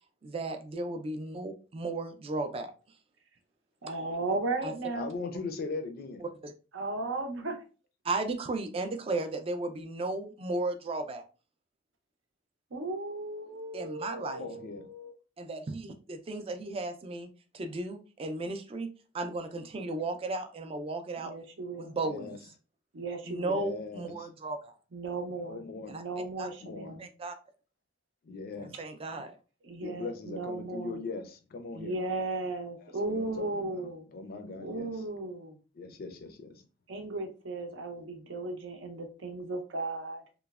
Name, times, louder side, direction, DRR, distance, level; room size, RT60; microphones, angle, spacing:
voice 1, 0.2-2.7 4.6-4.7 6.4-6.5 8.0-11.2 13.7-14.4 15.4-17.3 17.5-18.9 19.1-21.3 21.8-22.4 23.3-24.7 25.9-26.0 26.4-26.5 27.0-27.3 28.8-29.4, right 2 dB, 30° right, 0.3 m, -35 dB
voice 2, 3.8-5.1 6.7-7.6 12.7-15.1 19.8-20.1 21.2-22.0 22.9-23.6 24.9-25.6 25.9-27.1 29.6-31.0 31.7-34.0 34.6-35.6 36.9-40.2, right 2 dB, 75° right, 0.6 m, -36 dB
voice 3, 5.0-6.2 14.2-14.9 22.0-22.4 23.4-24.3 25.5-25.9 26.6-27.0 28.2-28.7 29.8-32.0 33.0-34.9 35.7-36.5, left 3 dB, 50° left, 0.4 m, -40 dB
3.0 x 2.0 x 2.3 m
head